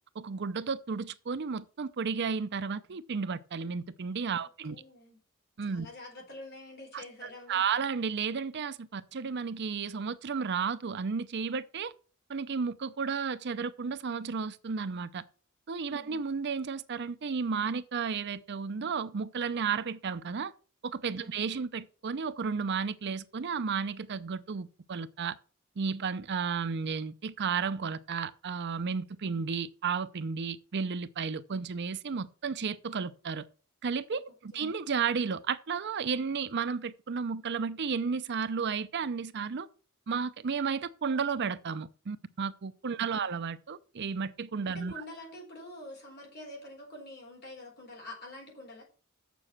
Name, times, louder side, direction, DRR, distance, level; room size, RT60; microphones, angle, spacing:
voice 1, 0.2-4.8 5.6-5.9 6.9-11.9 12.3-15.2 15.7-20.5 20.8-25.4 25.8-33.4 33.8-39.7 40.1-44.9, right 5 dB, 50° right, 0.5 m, -33 dB
voice 2, 4.3-5.2 5.6-7.6 15.9-16.2 21.2-21.4 34.5-34.8 42.9-43.3 44.6-48.8, left 1 dB, 50° left, 4.3 m, -47 dB
7.4 x 6.9 x 5.9 m
head